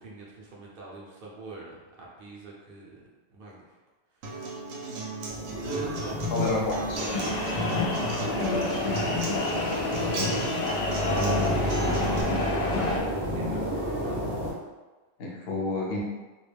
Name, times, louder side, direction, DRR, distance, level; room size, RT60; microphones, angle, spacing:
voice 1, 0.0-3.0 3.3-3.8 4.1-4.7 5.6-6.8 9.0-9.9 11.3-12.2 12.8-14.4, right 3 dB, 55° right, -4 dB, 0.7 m, -44 dB
Acoustic guitar, 4.2-12.2, right 1 dB, 80° right, 0.9 m, -35 dB
sound 1, 5.3-14.5, equal, 15° right, 0.4 m, -31 dB
voice 2, 6.3-7.0 11.2-11.7 15.2-16.0, left 2 dB, 60° left, -3 dB, 0.8 m, -30 dB
sound 2, 7.0-13.0, left 2 dB, 75° left, 0.3 m, -30 dB
2.3 x 2.1 x 3.2 m, 1.2 s
omnidirectional pair, 1.3 m